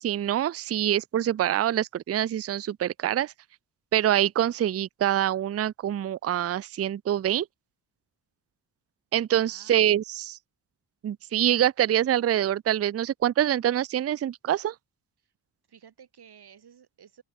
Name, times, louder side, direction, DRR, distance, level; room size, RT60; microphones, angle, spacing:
voice 1, 0.0-3.3 3.9-7.5 9.1-10.4 11.0-14.7, right 11 dB, 40° right, 0.4 m, -25 dB
voice 2, 9.4-9.9 15.2-15.3 15.7-17.2, right 8 dB, 70° right, 5.8 m, -53 dB
open air
wide cardioid pair, 155°, 40 cm